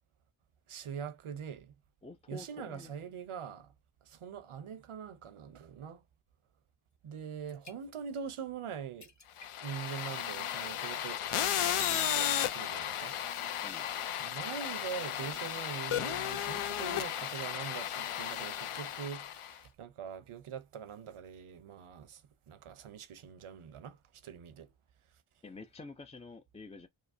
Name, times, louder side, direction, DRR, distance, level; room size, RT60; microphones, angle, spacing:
voice 1, 0.7-1.7 2.3-3.7 4.1-6.0 7.0-9.1 9.6-13.2 14.2-22.2 22.5-24.0 24.2-24.7, right 7 dB, 85° right, 0.7 m, -43 dB
voice 2, 2.0-2.9 13.6-13.9 25.4-26.9, left 2 dB, 15° left, 0.3 m, -48 dB
sound 1, 6.9-7.0 7.3-8.3 8.6-8.7 9.0-9.9 10.2-10.5 11.0-11.8 12.3-12.4, left 4 dB, 35° left, 0.8 m, -54 dB
sound 2, 9.4-19.6, left 10 dB, 85° left, 0.6 m, -34 dB
5.0 x 2.0 x 2.6 m
wide cardioid pair, 65°, 49 cm